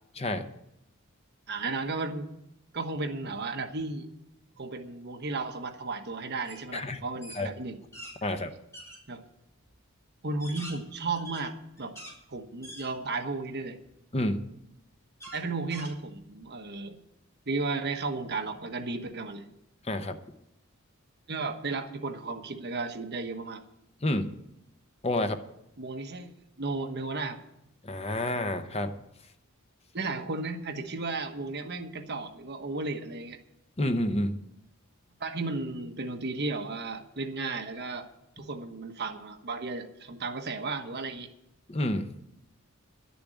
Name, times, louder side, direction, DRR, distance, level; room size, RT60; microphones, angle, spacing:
voice 1, 0.2-0.5 6.7-7.0 7.3-7.5 8.2-8.5 14.1-14.5 19.8-20.2 24.0-24.3 25.0-25.4 27.8-29.0 33.8-34.4 41.7-42.1, left 1 dB, 30° left, 8 dB, 0.8 m, -29 dB
voice 2, 1.5-2.3 2.7-4.1 4.6-7.8 8.2-8.3 9.1-9.2 10.2-11.9 12.3-13.8 15.3-17.0 17.5-19.5 21.3-23.6 25.8-27.4 29.9-33.4 35.2-38.1 38.4-41.3, right 3 dB, 50° right, 5 dB, 1.2 m, -34 dB
sound 1, 6.4-6.7 7.0-8.2 8.7-9.0 9.6-9.7 10.2-12.2 12.6-13.3 13.8-13.9 15.2-16.4, equal, 15° left, 3.7 m, -45 dB
11.5 x 7.0 x 9.3 m, 0.84 s
head